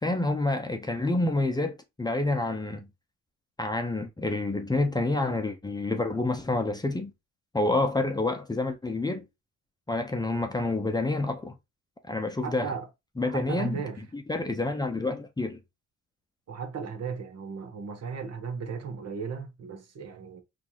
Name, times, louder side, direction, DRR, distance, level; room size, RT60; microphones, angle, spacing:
voice 1, 0.0-2.9 3.6-7.1 7.5-9.2 9.9-11.5 12.1-12.7 13.2-13.8 14.1-15.6, left 2 dB, 15° left, 0.6 m, -28 dB
voice 2, 12.4-12.9 13.2-14.0 16.5-20.4, right 5 dB, 55° right, 1.0 m, -36 dB
4.4 x 2.6 x 2.8 m
cardioid pair, 90°, 30 cm